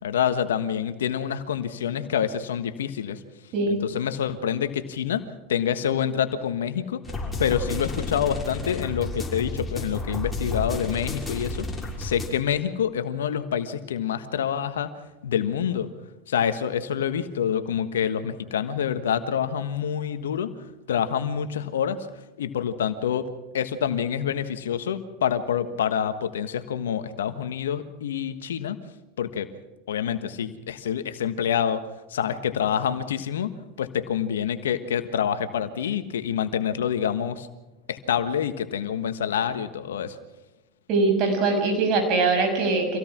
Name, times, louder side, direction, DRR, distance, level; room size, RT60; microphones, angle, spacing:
voice 1, 0.0-3.2 3.7-11.7 12.0-14.9 15.2-15.9 16.3-20.5 20.9-22.0 22.4-28.8 29.2-29.5 29.9-31.8 32.1-37.5 37.9-40.2, left 8 dB, 80° left, 10 dB, 1.4 m, -27 dB
sound 1, 7.0-12.3, left 2 dB, 10° left, 6.2 m, -31 dB
voice 2, 40.9-43.0, right 3 dB, 50° right, 4 dB, 6.6 m, -22 dB
26.0 x 17.5 x 6.1 m, 1.0 s
hypercardioid pair, 90°, 0 cm